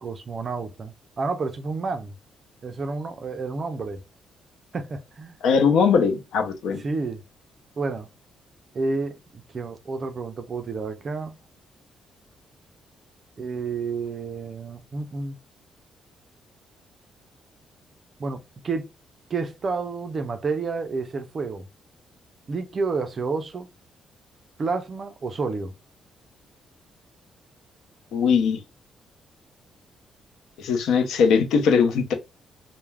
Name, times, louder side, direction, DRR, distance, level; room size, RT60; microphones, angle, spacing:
voice 1, 0.0-2.1 2.6-4.0 4.7-5.4 6.8-7.2 7.8-8.1 8.7-11.3 13.4-15.4 18.2-18.9 19.3-21.7 22.5-23.7 24.6-25.7, right 4 dB, 30° right, 0.3 m, -30 dB
voice 2, 5.4-6.8 28.1-28.6 30.6-32.1, left 6 dB, 85° left, 0.6 m, -20 dB
2.2 x 2.0 x 3.2 m
cardioid pair, 175°, 0 cm